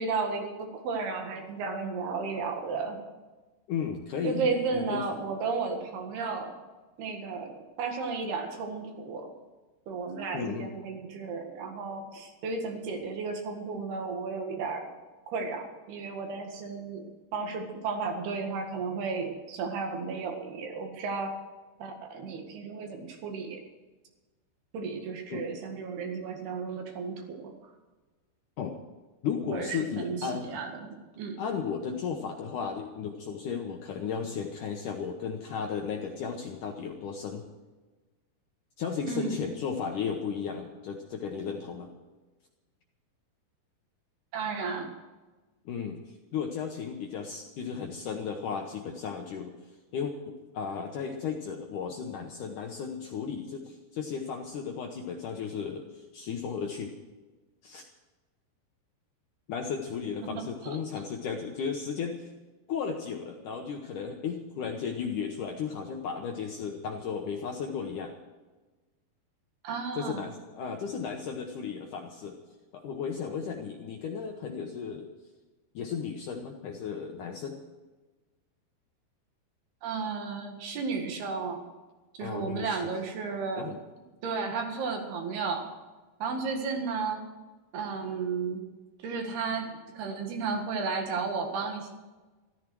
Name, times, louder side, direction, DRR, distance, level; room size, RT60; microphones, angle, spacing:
voice 1, 0.0-3.0 4.2-6.5 7.0-9.3 9.9-14.9 15.3-17.0 17.3-21.4 21.8-23.6 24.7-27.5 29.5-31.4 39.1-39.4 44.3-44.9 60.2-60.8 69.6-70.3 79.8-81.6 82.2-83.7 84.2-85.7 86.2-87.3 87.7-88.7 89.0-91.9, right 4 dB, 70° right, 4 dB, 3.7 m, -33 dB
voice 2, 3.7-5.0 10.3-10.7 25.3-25.4 28.6-28.8 29.2-30.5 31.4-37.5 38.8-41.9 45.7-49.6 49.9-56.9 57.6-57.8 59.5-62.3 62.7-68.1 70.0-72.4 72.7-75.1 75.7-77.6 82.2-82.8 83.6-83.8, left 6 dB, 70° left, 2 dB, 2.0 m, -35 dB
14.5 x 13.5 x 6.2 m, 1.2 s
omnidirectional pair, 4.9 m